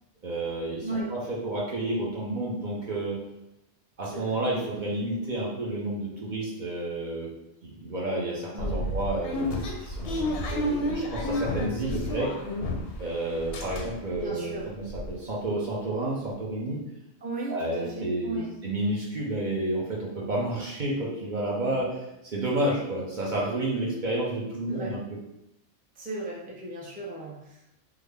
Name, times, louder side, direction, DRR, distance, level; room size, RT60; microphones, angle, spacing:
voice 1, 0.2-3.2 4.0-7.3 7.6-12.3 13.0-16.8 17.5-22.0 22.3-25.0, right 1 dB, 50° right, -4 dB, 0.7 m, -30 dB
voice 2, 0.8-1.2 4.0-4.4 8.5-8.8 14.1-14.7 17.2-18.5 21.6-21.8 24.7-25.0 26.0-27.7, right 2 dB, 15° right, -4 dB, 0.3 m, -36 dB
sound 1, 8.6-13.1 13.3-14.2 14.6-14.7 14.9-15.1, left 1 dB, 65° left, 0.7 m, -30 dB
3.6 x 2.1 x 3.3 m, 0.87 s
omnidirectional pair, 1.3 m